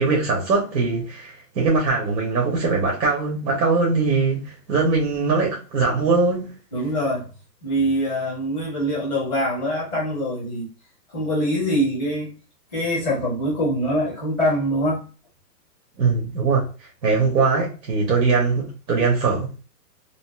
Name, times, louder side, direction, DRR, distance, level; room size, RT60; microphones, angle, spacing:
voice 1, 0.0-6.5 16.0-16.7 17.0-19.5, right 4 dB, 85° right, 1.3 m, -21 dB
voice 2, 6.7-7.3 7.6-10.7 11.1-12.3 12.7-15.0, equal, 5° right, 0.7 m, -24 dB
2.9 x 2.6 x 2.3 m
hypercardioid pair, 175°, 49 cm